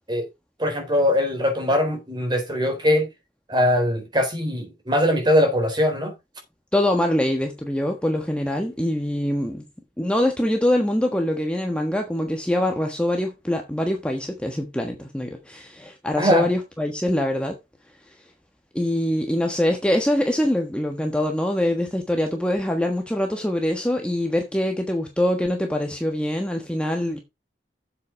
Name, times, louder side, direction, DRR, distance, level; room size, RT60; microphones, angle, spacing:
voice 1, 0.6-3.1 3.5-6.1 16.2-16.5, left 1 dB, 25° right, 3.9 m, -21 dB
voice 2, 6.7-9.6 10.0-17.6 18.7-27.2, left 1 dB, 5° left, 1.3 m, -24 dB
7.8 x 7.7 x 4.8 m
head